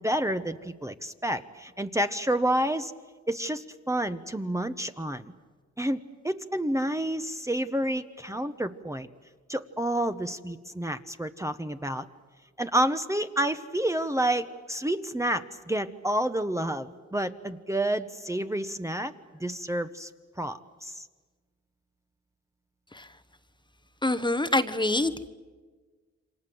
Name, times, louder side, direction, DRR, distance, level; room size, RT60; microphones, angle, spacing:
voice 1, 0.0-2.9 3.3-5.3 5.8-9.1 9.5-12.1 12.6-19.1 19.4-20.1 20.4-21.0, right 1 dB, 10° right, 8 dB, 1.0 m, -29 dB
voice 2, 24.0-25.3, left 2 dB, 15° left, 11 dB, 1.1 m, -26 dB
28.5 x 25.0 x 7.8 m, 1.4 s
cardioid pair, 85°, 29 cm